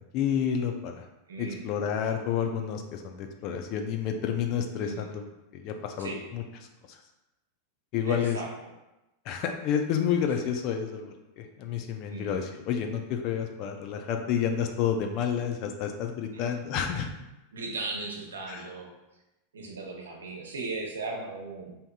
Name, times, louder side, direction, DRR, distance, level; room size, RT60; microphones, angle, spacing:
voice 1, 0.1-1.0 1.4-5.2 5.5-6.4 7.9-8.4 9.3-17.1 18.5-18.6, left 8 dB, 50° left, 5 dB, 0.4 m, -30 dB
voice 2, 1.3-1.7 4.8-5.1 6.0-6.2 8.1-8.5 12.1-12.4 16.3-16.6 17.5-18.9 19.5-21.8, right 3 dB, 90° right, 0 dB, 0.7 m, -37 dB
3.6 x 2.7 x 2.3 m, 0.97 s
hypercardioid pair, 105°, 0 cm